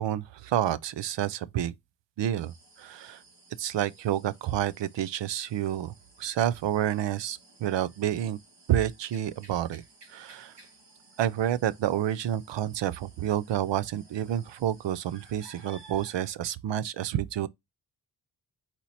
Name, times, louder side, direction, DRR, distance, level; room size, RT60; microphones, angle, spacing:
voice 1, 0.0-1.7 2.2-2.5 2.8-3.2 3.6-5.9 6.2-8.4 8.7-9.8 10.1-10.5 11.2-17.5, right 11 dB, 90° right, 0.6 m, -29 dB
sound 1, 2.4-16.3, right 3 dB, 75° right, 1.9 m, -56 dB
4.4 x 2.8 x 4.1 m
wide cardioid pair, 130°, 42 cm